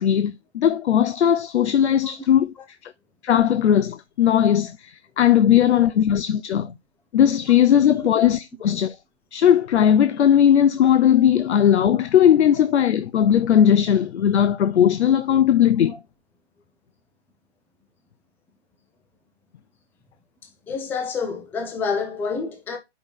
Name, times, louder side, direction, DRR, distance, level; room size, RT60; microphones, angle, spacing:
voice 1, 0.0-2.5 2.8-2.9 3.2-6.7 7.1-9.0 9.3-15.9, left 9 dB, 75° left, 0.6 m, -18 dB
voice 2, 20.7-22.8, left 5 dB, 5° left, 0.6 m, -28 dB
5.4 x 4.3 x 6.0 m
hypercardioid pair, 140°, 34 cm